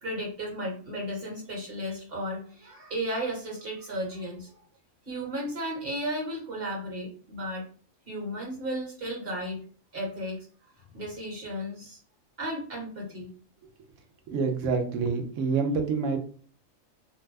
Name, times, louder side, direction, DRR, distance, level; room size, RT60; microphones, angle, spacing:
voice 1, 0.0-4.5 5.1-7.7 8.1-9.6 9.9-10.5 10.9-12.0 12.4-13.3, equal, 45° right, -1 dB, 1.3 m, -34 dB
voice 2, 14.3-16.2, right 4 dB, 75° right, 5 dB, 0.9 m, -27 dB
2.7 x 2.2 x 3.2 m, 0.43 s
omnidirectional pair, 1.4 m